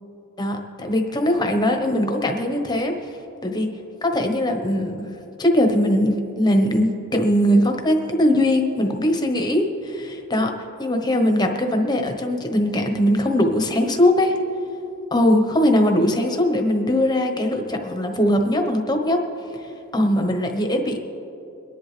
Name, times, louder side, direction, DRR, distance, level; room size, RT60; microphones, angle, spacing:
voice 1, 0.4-2.9 3.4-3.7 4.0-10.5 10.8-14.4 15.1-19.2 19.9-21.0, left 1 dB, 20° left, 4 dB, 1.1 m, -20 dB
24.0 x 11.0 x 3.4 m, 2.9 s
head